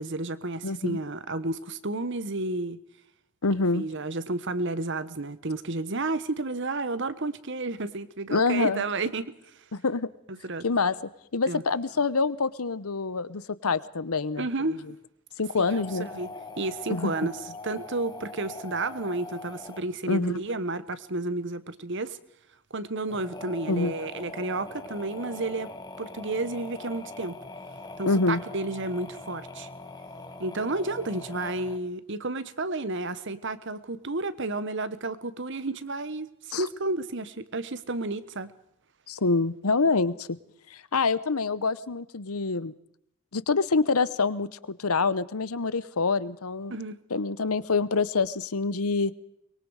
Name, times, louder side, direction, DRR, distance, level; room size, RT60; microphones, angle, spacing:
voice 1, 0.0-2.8 3.7-9.3 10.4-10.6 11.5-11.6 14.4-14.8 15.5-16.3 16.6-22.2 22.7-25.7 26.0-27.4 28.0-29.7 30.4-38.5 46.7-47.0, right 2 dB, 55° right, 14 dB, 1.3 m, -31 dB
voice 2, 0.6-1.0 3.4-3.8 8.3-8.8 9.7-10.1 10.6-11.0 11.3-14.4 15.4-16.1 16.9-17.3 20.1-20.4 23.7-23.9 28.0-28.4 36.5-36.7 39.1-40.4 40.7-42.7 43.3-46.8 47.1-49.1, left 4 dB, 85° left, 17 dB, 1.0 m, -26 dB
sound 1, 15.6-20.1 23.0-31.8, left 2 dB, 20° left, 1.3 m, -42 dB
24.0 x 22.5 x 4.9 m, 0.75 s
head